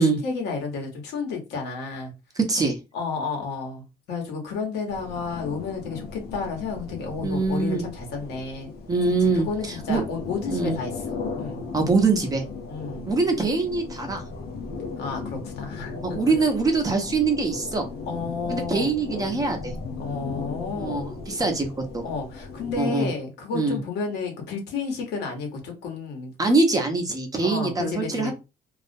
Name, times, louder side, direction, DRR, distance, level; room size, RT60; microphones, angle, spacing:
voice 1, 0.0-2.1 2.9-8.7 9.3-11.6 12.7-13.1 15.0-16.3 18.0-18.9 20.0-21.2 22.0-26.3 27.4-28.3, left 4 dB, 80° left, 1.0 m, -31 dB
voice 2, 2.4-2.8 7.2-7.8 8.9-10.0 10.5-10.8 11.7-12.4 13.1-14.2 16.0-17.9 18.5-19.7 20.8-22.1 22.8-23.1 23.5-23.8 26.4-28.3, right 3 dB, 20° right, 0.6 m, -23 dB
sound 1, 4.9-22.8, left 4 dB, 65° left, 0.7 m, -37 dB
2.3 x 2.1 x 2.6 m
cardioid pair, 110°, 17 cm